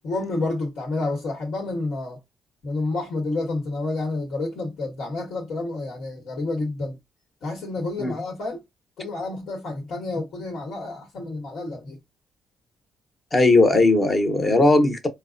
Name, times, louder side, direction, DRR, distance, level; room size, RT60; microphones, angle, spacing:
voice 1, 0.0-2.2 2.6-7.0 7.4-8.6 9.0-12.0, left 2 dB, 70° left, 1.2 m, -29 dB
voice 2, 13.3-15.1, left 2 dB, 25° left, 0.9 m, -18 dB
4.5 x 2.2 x 2.5 m
cardioid pair, 90°, 0 cm